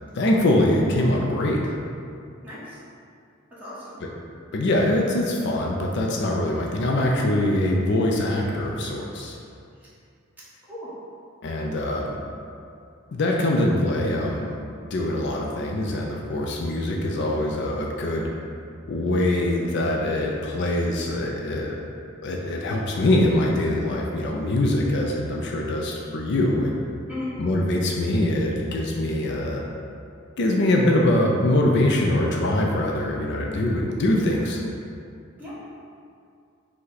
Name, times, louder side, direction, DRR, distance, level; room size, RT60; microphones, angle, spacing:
voice 1, 0.1-1.7 4.0-4.1 4.5-9.4 11.4-12.2 13.1-14.5 14.9-18.3 18.9-21.9 22.2-26.8 27.4-29.6 30.4-34.6, left 1 dB, 60° left, -1 dB, 0.4 m, -23 dB
voice 2, 2.4-2.8 3.5-4.0 10.6-10.9 11.6-11.7 27.1-27.3 35.4-35.6, left 1 dB, 10° right, -10 dB, 1.2 m, -36 dB
5.4 x 2.2 x 3.9 m, 2.4 s
head